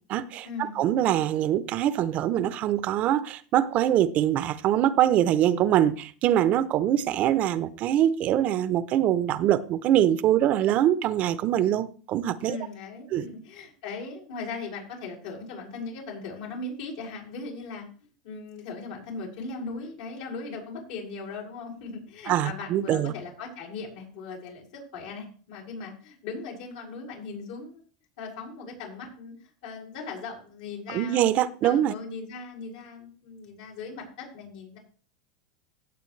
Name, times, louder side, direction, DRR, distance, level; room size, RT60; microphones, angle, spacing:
voice 1, 0.1-12.6 13.1-13.3 22.3-23.1 30.9-31.9, right 11 dB, 40° right, 0.7 m, -23 dB
voice 2, 12.4-17.8 18.2-27.8 28.2-29.3 29.6-31.3 31.6-34.8, left 4 dB, 75° left, 5.8 m, -38 dB
16.5 x 7.9 x 3.3 m
supercardioid pair, 130°, 4 cm